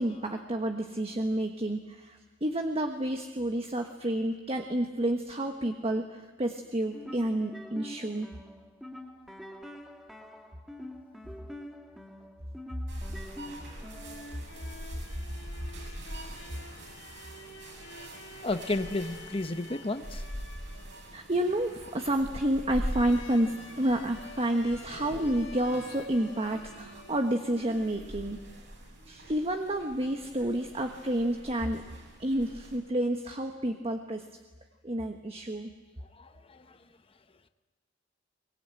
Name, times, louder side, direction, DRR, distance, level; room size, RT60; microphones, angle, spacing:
voice 1, 0.0-8.3 21.1-28.4 29.1-31.8 32.2-34.3 34.8-35.7, right 1 dB, 30° right, 5 dB, 1.3 m, -30 dB
sound 1, 6.8-14.3, left 1 dB, ahead, 2.1 m, -45 dB
sound 2, 12.9-32.8, right 1 dB, 65° right, 7.1 m, -43 dB
sound 3, 13.7-28.3, left 3 dB, 70° left, 3.3 m, -50 dB
voice 2, 18.4-20.2 36.0-36.8, left 2 dB, 30° left, 9 dB, 1.0 m, -33 dB
23.0 x 21.5 x 9.0 m, 1.3 s
head